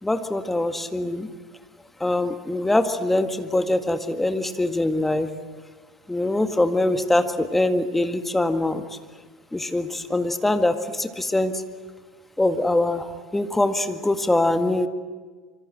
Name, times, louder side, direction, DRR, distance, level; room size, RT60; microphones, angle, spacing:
voice 1, 0.0-1.3 2.0-5.3 6.1-8.9 9.5-11.5 12.4-14.9, left 2 dB, 10° left, 8 dB, 1.8 m, -23 dB
26.0 x 25.0 x 7.7 m, 1.5 s
figure-of-eight pair, 75°, 2 cm